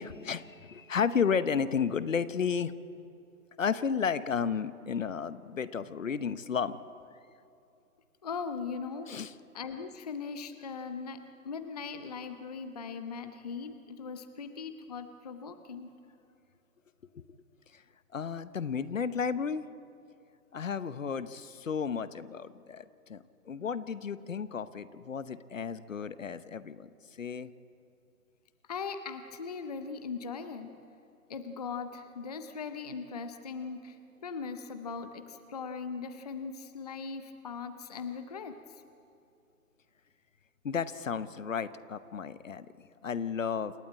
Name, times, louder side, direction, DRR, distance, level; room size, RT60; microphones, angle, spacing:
voice 1, 0.0-2.7 3.6-6.8 9.1-9.3 17.1-17.2 17.7-17.8 18.1-19.6 20.5-26.9 27.2-27.5 40.6-43.7, left 6 dB, 55° left, 15 dB, 0.9 m, -33 dB
voice 2, 8.2-9.1 9.5-15.9 28.7-30.7 31.3-34.0 34.2-38.6, left 5 dB, 25° left, 9 dB, 0.7 m, -39 dB
27.5 x 12.0 x 8.7 m, 2.6 s
figure-of-eight pair, 145°, 46 cm